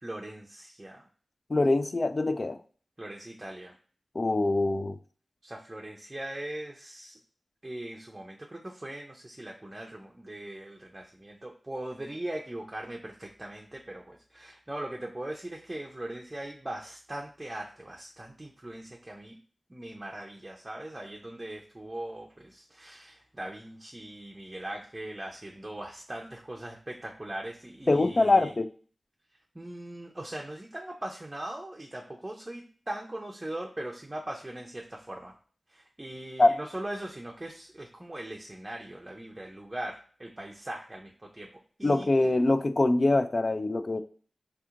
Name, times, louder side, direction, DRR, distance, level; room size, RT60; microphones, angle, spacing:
voice 1, 0.0-1.1 3.0-3.7 5.4-7.2 7.6-19.4 19.7-28.5 29.5-35.3 35.7-41.5 41.8-42.1, right 1 dB, 25° right, -1 dB, 0.5 m, -40 dB
voice 2, 1.5-2.6 4.2-5.0 27.9-28.7 36.4-36.5 41.8-44.0, left 2 dB, 50° left, 10 dB, 0.3 m, -24 dB
3.4 x 2.8 x 2.4 m, 0.41 s
cardioid pair, 40°, 0 cm